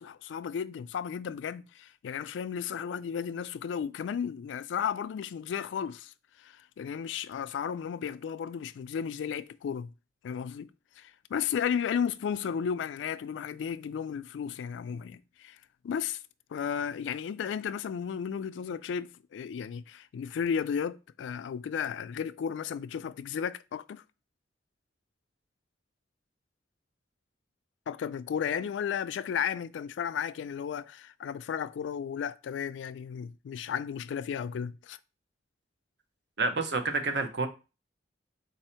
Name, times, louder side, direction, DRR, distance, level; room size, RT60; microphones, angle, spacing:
voice 1, 0.0-6.1 6.4-9.9 10.2-10.7 11.0-15.6 15.8-16.2 16.5-24.0 27.9-35.0, left 7 dB, 90° left, 0.3 m, -34 dB
voice 2, 36.4-37.5, right 3 dB, 65° right, 0.7 m, -28 dB
4.1 x 2.7 x 4.3 m
head